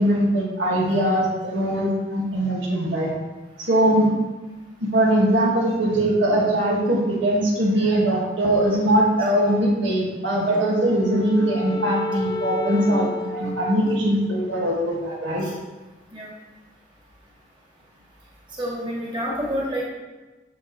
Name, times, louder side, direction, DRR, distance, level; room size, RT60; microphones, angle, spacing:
voice 1, 0.0-3.1 3.6-4.1 4.8-15.5, right 1 dB, 85° right, -3 dB, 2.3 m, -21 dB
Wind instrument woodwind instrument, 10.5-14.9, left 2 dB, 20° left, 0.3 m, -31 dB
voice 2, 18.6-19.8, equal, 25° right, -5 dB, 2.0 m, -28 dB
8.1 x 7.4 x 3.3 m, 1.2 s
head